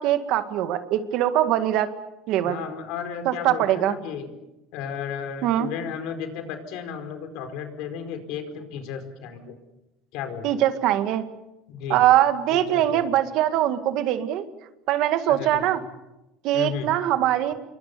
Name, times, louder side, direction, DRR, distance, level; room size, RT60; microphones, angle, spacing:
voice 1, 0.0-1.9 2.3-2.6 3.3-4.0 5.4-5.7 10.4-11.2 11.9-14.5 14.9-15.8 16.4-17.5, right 12 dB, 60° right, 9 dB, 2.0 m, -22 dB
voice 2, 2.4-4.3 4.7-9.6 10.1-10.6 11.7-12.0 12.5-13.1 15.3-15.6 16.5-16.9, left 7 dB, 65° left, 7 dB, 4.7 m, -34 dB
28.0 x 23.5 x 6.9 m, 0.94 s
cardioid pair, 150°, 0 cm